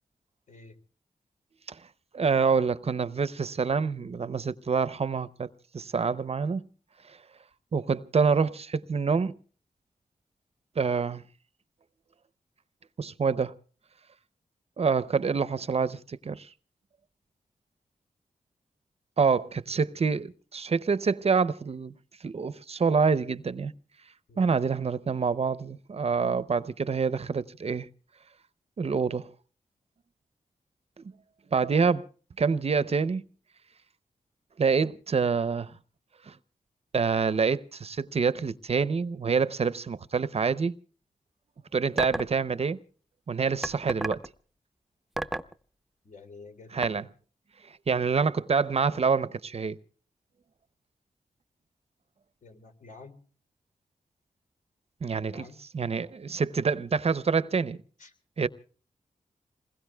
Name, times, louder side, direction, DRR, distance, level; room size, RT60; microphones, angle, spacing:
voice 1, 2.1-6.7 7.1-7.2 7.7-9.4 10.8-11.2 13.0-13.5 14.8-16.5 19.2-21.9 22.2-23.7 24.4-27.9 28.8-29.3 31.5-32.1 32.4-33.2 34.6-35.7 36.3-36.4 36.9-40.8 41.7-42.8 43.3-44.2 46.7-47.1 47.9-49.8 55.0-55.4 55.7-57.8 58.4-58.5, right 5 dB, 50° right, 0.6 m, -26 dB
sound 1, 42.0-42.3 43.6-44.3 45.2-45.5 46.8-46.9, right 1 dB, ahead, 0.7 m, -30 dB
voice 2, 46.0-46.7 52.4-53.2 55.3-55.6 58.0-58.1, left 3 dB, 65° left, 3.0 m, -49 dB
27.5 x 21.0 x 2.3 m
wide cardioid pair, 90°, 14 cm